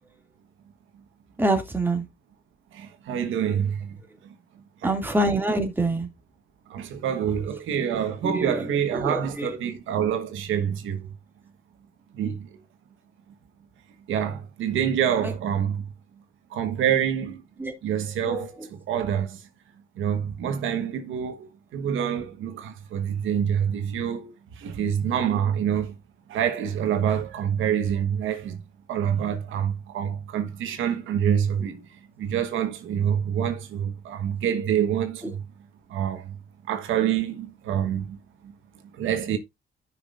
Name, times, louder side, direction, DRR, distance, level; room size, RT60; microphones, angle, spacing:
voice 1, 1.4-2.0 4.8-6.1 8.2-8.6 8.9-9.5 17.6-17.7 18.3-18.4 35.2-35.3, right 2 dB, 10° right, 2.5 m, -25 dB
voice 2, 2.7-4.0 4.8-5.3 6.7-11.1 12.1-12.5 14.1-15.9 16.5-17.4 17.8-18.5 18.9-19.4 20.0-25.9 26.3-28.6 28.9-31.9 32.2-35.4 35.9-36.4 36.7-38.2 38.9-39.4, right 9 dB, 80° right, 1.4 m, -26 dB
14.0 x 6.0 x 2.5 m
cardioid pair, 90°, 20 cm